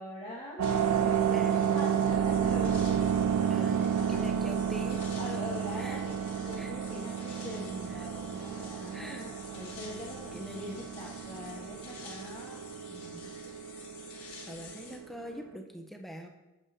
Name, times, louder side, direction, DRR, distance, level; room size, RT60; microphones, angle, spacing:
voice 1, 0.0-4.3 5.1-12.6 12.9-13.3, left 1 dB, 20° left, -10 dB, 1.4 m, -43 dB
sound 1, 0.6-15.0, left 4 dB, 75° left, 1.2 m, -50 dB
sound 2, 0.6-15.6, right 8 dB, 90° right, 0.4 m, -31 dB
voice 2, 1.3-1.9 3.5-3.8 4.1-5.0 5.8-6.0 6.6-7.1 8.0-8.1 8.9-9.3 10.3-10.8 14.5-16.3, equal, ahead, 2 dB, 0.4 m, -43 dB
7.2 x 4.9 x 2.7 m, 1.0 s
head